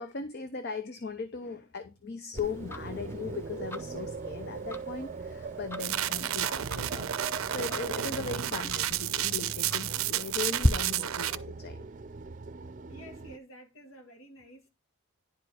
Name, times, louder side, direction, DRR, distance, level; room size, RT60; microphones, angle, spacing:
voice 1, 0.0-7.1 7.5-11.9, left 5 dB, 50° left, 0.7 m, -38 dB
sound 1, 2.3-13.4, right 4 dB, 40° right, 0.5 m, -42 dB
Tick-tock, 2.4-10.7, equal, 10° left, 0.5 m, -37 dB
sound 2, 5.8-11.3, right 12 dB, 90° right, 0.5 m, -31 dB
voice 2, 12.9-14.7, right 1 dB, 80° left, 2.0 m, -50 dB
10.5 x 4.9 x 4.3 m
head